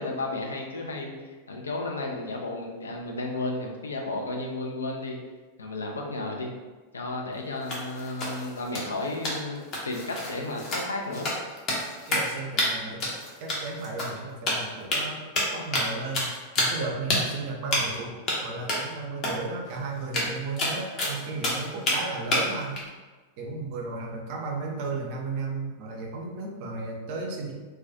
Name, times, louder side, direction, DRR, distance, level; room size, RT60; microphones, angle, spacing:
voice 1, 0.0-5.2 5.6-6.5 6.9-9.6 9.8-11.3, left 2 dB, 70° left, 0 dB, 0.4 m, -33 dB
sound 1, 7.6-12.3 12.6-12.7 13.0-14.2 14.5-15.0 15.4-16.8 17.1-17.2 17.7-18.0 18.3-18.4 18.7-18.8 19.2-19.3 19.7-19.8 20.0-22.0 22.3-22.8, left 1 dB, 35° left, 0.6 m, -28 dB
voice 2, 12.1-13.1 13.4-15.2 15.5-16.3 16.6-22.8 23.4-27.5, right 3 dB, 45° right, 0 dB, 0.5 m, -34 dB
2.3 x 2.2 x 2.5 m, 1.3 s
figure-of-eight pair, 90°, 0 cm